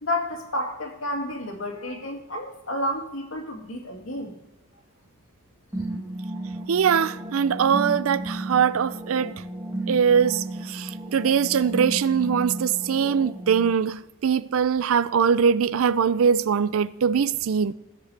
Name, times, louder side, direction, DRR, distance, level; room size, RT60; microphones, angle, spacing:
voice 1, 0.0-4.3 5.8-5.9, left 1 dB, 70° left, 2.3 m, -31 dB
sound 1, 5.7-13.7, right 1 dB, 15° right, 1.3 m, -34 dB
voice 2, 6.7-9.3 9.9-17.7, right 7 dB, 80° right, 0.4 m, -22 dB
16.5 x 6.7 x 3.3 m
head